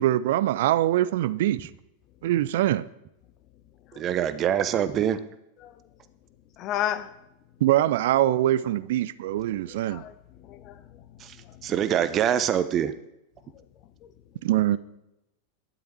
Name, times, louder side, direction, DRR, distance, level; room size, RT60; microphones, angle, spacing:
voice 1, 0.0-1.7 2.2-2.9 7.6-10.0 14.4-14.8, right 13 dB, 55° right, 0.5 m, -23 dB
voice 2, 3.9-5.2 11.2-12.9, right 9 dB, 30° right, 0.9 m, -25 dB
voice 3, 6.6-7.3 9.7-11.7 13.5-13.6 14.0-14.1, left 11 dB, 35° left, 0.9 m, -35 dB
13.0 x 10.5 x 4.4 m
figure-of-eight pair, 90°, 0 cm